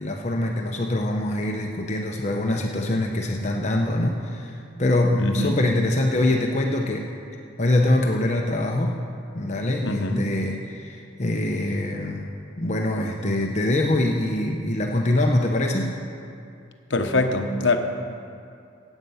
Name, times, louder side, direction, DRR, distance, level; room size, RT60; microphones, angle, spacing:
voice 1, 0.0-7.1 7.6-9.0 9.3-12.2 12.6-15.9, left 1 dB, 35° left, 1 dB, 0.8 m, -24 dB
voice 2, 5.2-5.6 9.8-10.3 16.9-17.8, left 2 dB, 65° left, 5 dB, 1.0 m, -23 dB
17.0 x 8.1 x 5.6 m, 2.5 s
head